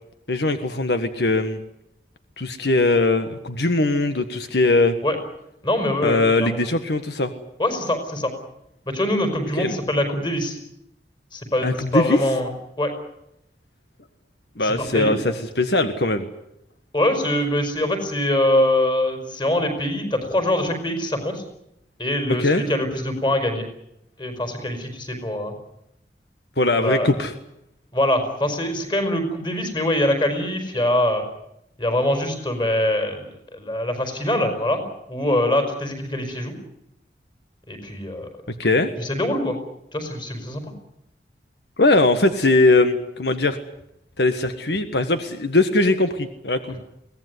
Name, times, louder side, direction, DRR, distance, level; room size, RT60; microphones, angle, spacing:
voice 1, 0.3-1.6 2.4-5.0 6.0-7.3 9.6-9.7 11.6-12.2 14.6-16.3 22.4-22.6 26.6-27.3 38.6-38.9 41.8-43.6 44.2-46.8, left 2 dB, 70° left, 8 dB, 1.6 m, -20 dB
voice 2, 5.6-6.6 7.6-8.3 8.9-10.6 11.3-12.5 12.8-12.9 14.6-15.1 16.9-21.4 22.0-23.7 24.2-25.6 26.8-27.1 27.9-31.2 31.8-34.8 35.1-36.5 37.7-38.3 39.0-39.6 39.9-40.6, left 1 dB, 25° left, 6 dB, 4.9 m, -23 dB
23.0 x 18.0 x 9.6 m, 0.81 s
head